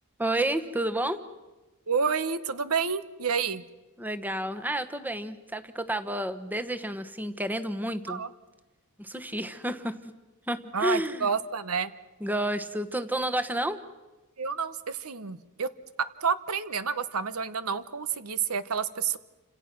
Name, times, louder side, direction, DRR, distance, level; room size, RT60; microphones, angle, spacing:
voice 1, 0.2-1.2 4.0-8.2 9.0-10.0 10.5-11.3 12.2-13.8, right 1 dB, 10° right, 9 dB, 1.1 m, -30 dB
voice 2, 1.9-3.6 8.1-8.3 10.7-11.9 14.4-15.7 16.2-19.2, right 6 dB, 90° right, 13 dB, 1.2 m, -29 dB
29.5 x 27.0 x 6.1 m, 1.1 s
head